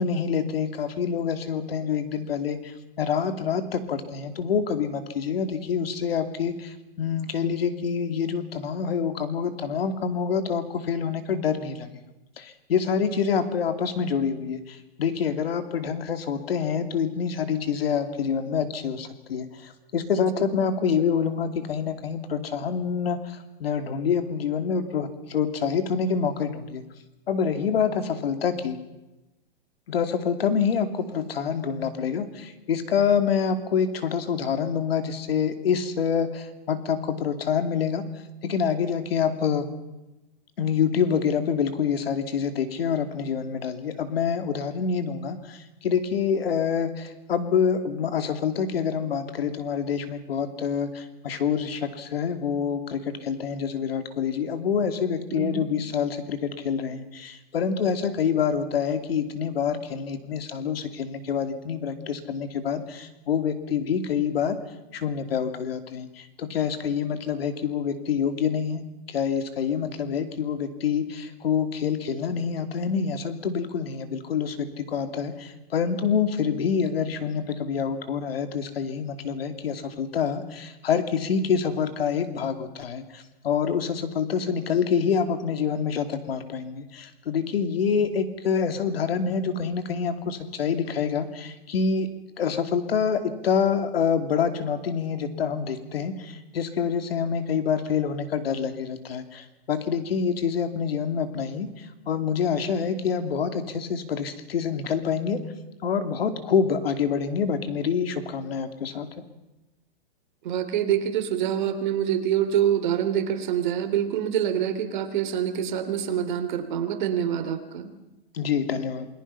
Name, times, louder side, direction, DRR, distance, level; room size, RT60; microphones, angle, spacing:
voice 1, 0.0-11.9 12.4-26.8 27.3-28.8 29.9-38.0 38.4-39.7 40.6-64.6 64.9-92.1 92.4-105.4 105.8-109.2 118.3-119.1, left 6 dB, 80° left, 9 dB, 2.8 m, -26 dB
voice 2, 55.3-55.6 110.4-117.9, right 9 dB, 55° right, 8 dB, 3.1 m, -26 dB
29.0 x 21.0 x 5.7 m, 1.0 s
hypercardioid pair, 165°, 30 cm